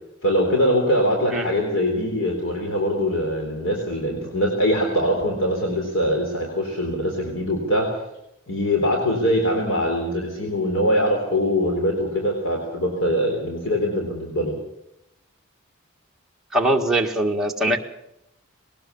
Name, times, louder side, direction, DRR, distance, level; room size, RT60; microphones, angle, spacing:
voice 1, 0.2-7.9 8.5-14.6, equal, 65° left, 1 dB, 3.9 m, -22 dB
voice 2, 16.5-17.8, right 1 dB, 5° right, -1 dB, 1.7 m, -21 dB
20.5 x 18.5 x 7.0 m, 0.83 s
head